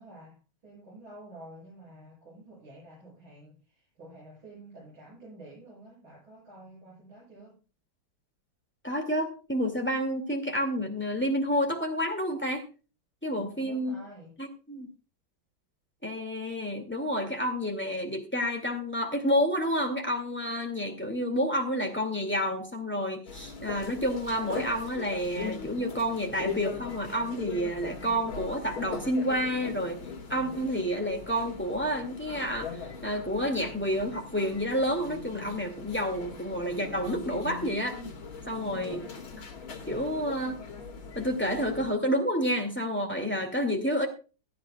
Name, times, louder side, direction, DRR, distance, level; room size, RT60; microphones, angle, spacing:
voice 1, 0.0-7.6 13.3-14.3 38.4-39.1, right 2 dB, 90° right, -7 dB, 9.0 m, -49 dB
voice 2, 8.8-12.6 13.2-14.0 14.4-14.9 16.0-30.0 30.3-38.0 38.5-39.0 39.9-40.6 41.1-44.1, equal, 5° left, 4 dB, 2.2 m, -29 dB
sound 1, 23.3-41.9, left 5 dB, 85° left, 2.9 m, -40 dB
17.5 x 12.5 x 2.3 m, 0.34 s
omnidirectional pair, 2.1 m